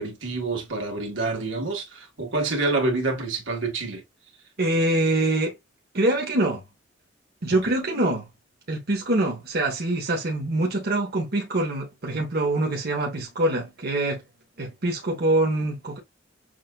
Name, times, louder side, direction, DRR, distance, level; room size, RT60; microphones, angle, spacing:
voice 1, 0.0-4.0 7.6-7.7, right 3 dB, 85° right, 1.7 m, -27 dB
voice 2, 4.6-5.5 5.9-6.6 7.4-8.3 8.7-14.2 14.6-16.0, right 2 dB, 55° right, 1.0 m, -24 dB
6.3 x 2.5 x 2.2 m
head